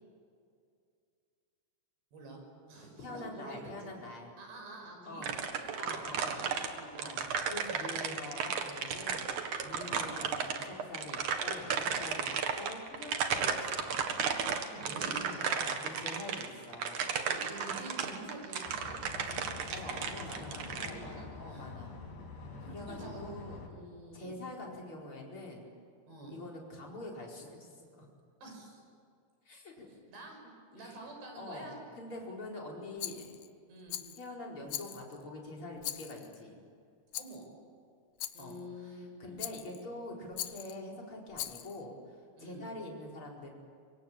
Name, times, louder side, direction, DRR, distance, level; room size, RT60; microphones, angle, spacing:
voice 1, 2.1-2.4 2.7-3.7 4.4-7.2 9.7-10.0 14.7-15.5 17.3-21.7 22.6-23.2 23.6-24.4 26.1-26.4 28.4-28.8 30.1-30.4 30.7-31.8 33.7-34.0 37.2-37.5 38.3-39.4 42.4-42.7, right 2 dB, 70° right, 2 dB, 8.5 m, -48 dB
voice 2, 3.0-4.3 5.1-5.4 5.7-6.4 7.0-12.3 12.6-14.2 15.5-17.1 19.7-21.9 22.7-23.6 24.1-25.7 26.3-28.1 29.5-29.9 30.7-31.0 31.4-33.5 34.2-36.6 38.4-43.5, left 2 dB, 30° left, -2 dB, 5.2 m, -45 dB
sound 1, 5.2-20.9, right 6 dB, 55° right, 2.6 m, -34 dB
sound 2, 18.7-23.7, left 4 dB, 70° left, 6.6 m, -46 dB
Rattle, 33.0-33.5 33.9-34.3 34.7-35.2 35.8-36.4 37.1-37.4 38.2-38.6 39.4-39.8 40.3-40.8 41.3-41.8, left 13 dB, 90° left, 1.8 m, -41 dB
24.5 x 24.5 x 8.8 m, 2.3 s
omnidirectional pair, 5.1 m